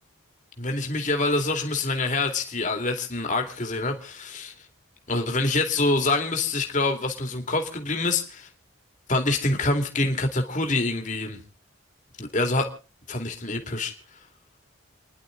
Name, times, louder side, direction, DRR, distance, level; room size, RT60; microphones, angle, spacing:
voice 1, 0.6-4.5 5.1-8.5 9.1-11.4 12.2-12.7 13.1-13.9, left 2 dB, 40° left, 2.4 m, -26 dB
30.0 x 11.0 x 3.8 m
head